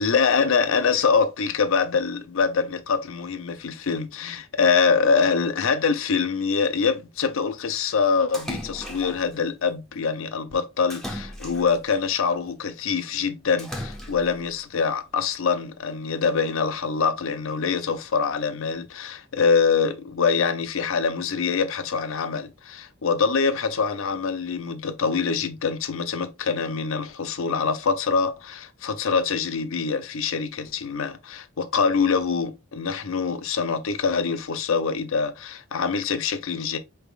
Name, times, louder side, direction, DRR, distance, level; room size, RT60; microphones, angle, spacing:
voice 1, 0.0-36.8, left 5 dB, 65° left, 0.6 m, -24 dB
Splash splatter, 8.3-9.3 10.9-12.0 13.6-14.4, equal, ahead, 0.7 m, -36 dB
4.7 x 3.4 x 2.4 m
head